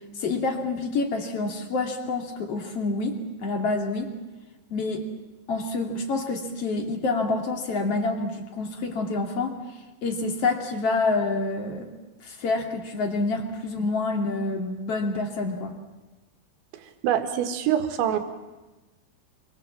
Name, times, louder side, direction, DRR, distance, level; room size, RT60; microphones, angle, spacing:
voice 1, 0.1-4.2 4.7-5.0 5.5-9.6 10.0-11.9 12.2-15.7, left 3 dB, 40° left, 4 dB, 2.6 m, -27 dB
voice 2, 17.0-18.2, right 10 dB, 80° right, 6 dB, 4.0 m, -24 dB
27.0 x 23.5 x 7.4 m, 1.1 s
omnidirectional pair, 5.3 m